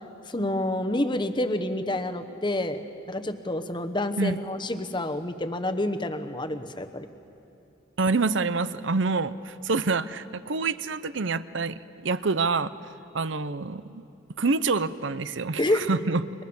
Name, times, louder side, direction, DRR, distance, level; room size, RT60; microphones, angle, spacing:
voice 1, 0.3-2.8 3.1-7.1 15.6-15.8, left 1 dB, 25° left, 9 dB, 1.1 m, -28 dB
voice 2, 8.0-12.7 13.1-14.0 14.4-16.2, right 4 dB, 65° right, 15 dB, 0.7 m, -27 dB
29.5 x 24.5 x 7.1 m, 2.7 s
head